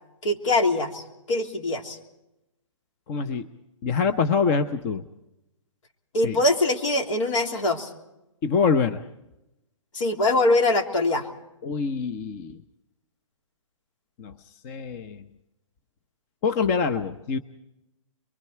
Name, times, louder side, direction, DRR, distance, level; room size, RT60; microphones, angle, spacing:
voice 1, 0.2-2.0 6.1-7.9 9.9-11.3, left 2 dB, 70° left, 3 dB, 3.4 m, -23 dB
voice 2, 3.1-3.5 3.8-5.0 6.2-6.4 8.4-9.0 11.6-12.6 14.2-14.3 14.6-15.2 16.4-17.4, left 5 dB, 30° left, 8 dB, 0.8 m, -25 dB
25.5 x 23.0 x 4.6 m, 0.92 s
hypercardioid pair, 145°, 17 cm